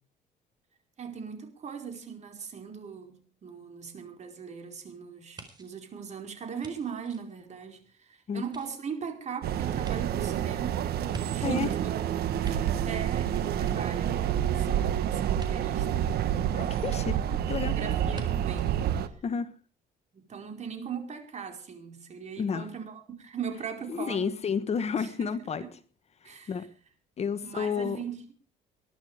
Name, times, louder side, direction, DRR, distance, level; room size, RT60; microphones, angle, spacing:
voice 1, 1.0-10.9 11.3-11.9 12.4-16.1 17.1-18.8 20.1-24.3 25.0-25.3 26.2-26.7 27.4-28.3, right 6 dB, 45° right, 4.7 m, -39 dB
sound 1, 5.4-8.0 8.4-11.8 12.2-13.2 13.5-14.5 15.4-15.5 16.9-17.0 18.1-18.3 18.6-18.7, right 2 dB, 25° right, 4.2 m, -48 dB
sound 2, 9.4-19.1, right 10 dB, 70° right, 1.5 m, -28 dB
voice 2, 16.5-17.2 17.5-17.7 19.2-19.5 22.4-22.7 23.9-25.6 26.5-26.7 27.2-28.0, left 6 dB, 40° left, 1.3 m, -30 dB
20.5 x 12.0 x 5.0 m
cardioid pair, 110°, 17 cm